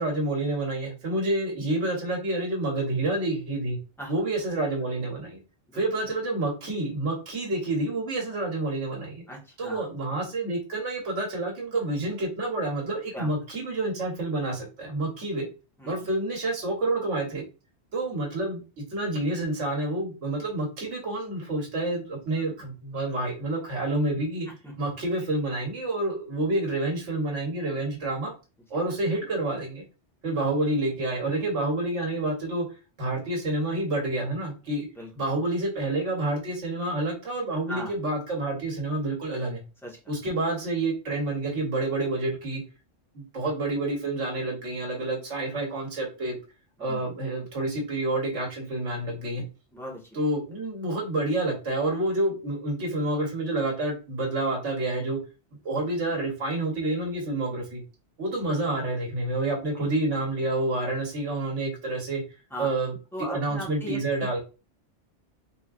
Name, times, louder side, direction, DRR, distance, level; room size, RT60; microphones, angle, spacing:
voice 1, 0.0-3.8 4.1-5.4 5.7-9.2 9.6-15.5 15.8-17.4 17.9-24.5 24.8-28.3 28.7-29.8 30.2-32.6 33.0-34.9 35.2-39.6 40.1-42.6 43.1-46.4 46.8-49.4 50.1-55.2 55.6-57.8 58.2-62.2 62.6-62.9 63.3-64.4, right 2 dB, 80° right, 1 dB, 1.5 m, -28 dB
voice 2, 9.3-9.8 13.1-13.3 15.8-15.9 24.5-24.7 35.0-35.3 37.7-37.9 39.8-40.0 46.8-47.0 49.7-50.1 59.8-59.9 62.5-62.7 63.1-64.4, equal, ahead, -2 dB, 1.2 m, -38 dB
4.1 x 3.6 x 2.4 m, 0.31 s
omnidirectional pair, 1.2 m